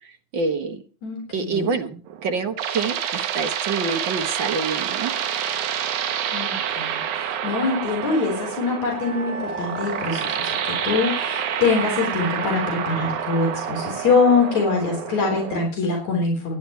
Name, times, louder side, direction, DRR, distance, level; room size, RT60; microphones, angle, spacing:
voice 1, 0.0-0.8 1.3-5.1, right 4 dB, 50° right, 7 dB, 1.6 m, -27 dB
voice 2, 1.0-1.7 6.3-7.0 7.4-16.6, left 4 dB, 70° left, 0 dB, 5.1 m, -23 dB
sound 1, 2.1-15.7, right 9 dB, 85° right, 2.7 m, -28 dB
Wind instrument woodwind instrument, 8.9-13.8, right 2 dB, 25° left, 6.2 m, -36 dB
18.0 x 10.0 x 4.5 m, 0.39 s
omnidirectional pair, 3.3 m